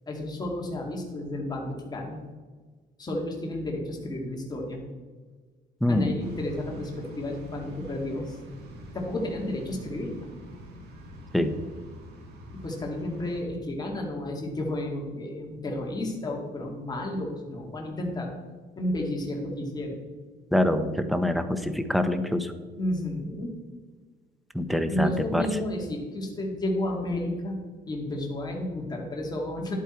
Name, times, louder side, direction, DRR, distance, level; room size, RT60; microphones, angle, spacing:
voice 1, 0.1-2.2 3.0-4.8 5.9-8.4 8.9-10.3 12.5-18.3 18.8-20.0 22.8-23.5 24.9-27.6 27.9-29.7, left 1 dB, 25° left, 0 dB, 2.3 m, -32 dB
voice 2, 5.8-6.2 11.3-11.5 20.5-22.5 24.5-25.6, left 1 dB, ahead, 9 dB, 0.9 m, -25 dB
sound 1, 6.2-13.4, equal, 75° right, 2.4 m, -45 dB
11.0 x 8.5 x 4.5 m, 1.4 s
cardioid pair, 110°, 17 cm